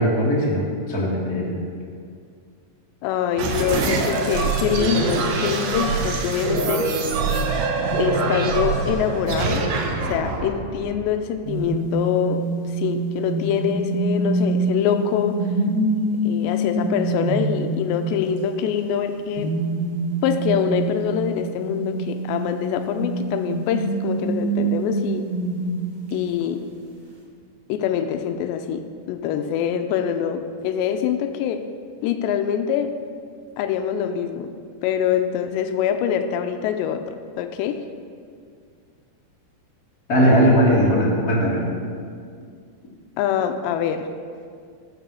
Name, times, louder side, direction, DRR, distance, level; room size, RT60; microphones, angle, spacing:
voice 1, 0.0-1.6 40.1-41.7, equal, 30° left, -4 dB, 1.8 m, -19 dB
voice 2, 3.0-6.9 8.0-9.6 10.1-12.4 12.7-15.4 16.2-19.5 20.2-25.2 26.1-26.6 27.7-31.6 32.0-32.9 33.6-34.5 34.8-37.8 43.2-44.1, left 8 dB, 90° left, 7 dB, 2.9 m, -24 dB
sound 1, 3.4-11.6, right 4 dB, 70° right, 2.1 m, -24 dB
sound 2, 11.4-18.6 19.3-26.5, right 2 dB, 40° right, 2.8 m, -26 dB
13.5 x 6.9 x 6.9 m, 2.2 s
omnidirectional pair, 5.0 m